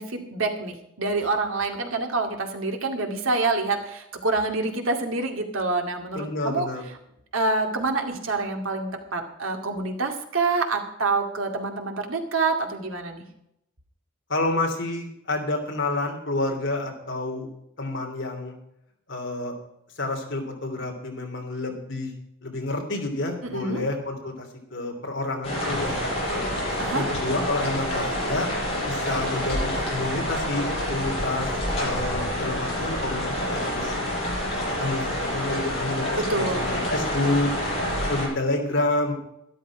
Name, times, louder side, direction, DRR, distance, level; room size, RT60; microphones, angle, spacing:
voice 1, 0.0-6.7 7.3-13.2 23.4-23.8 26.8-27.0 36.1-36.7, right 3 dB, 75° right, 4 dB, 2.2 m, -27 dB
voice 2, 6.1-6.8 14.3-17.5 17.8-18.5 19.1-19.5 20.0-22.1 22.4-24.5 24.7-25.9 26.3-26.5 26.9-28.5 28.8-31.5 31.8-33.2 33.5-33.9 34.5-37.5 38.1-39.1, left 2 dB, 60° left, 2 dB, 3.1 m, -29 dB
sound 1, 25.4-38.3, equal, 30° left, 6.5 m, -28 dB
sound 2, 25.8-30.5, equal, 5° left, 3.6 m, -44 dB
12.5 x 12.0 x 4.9 m, 0.80 s
head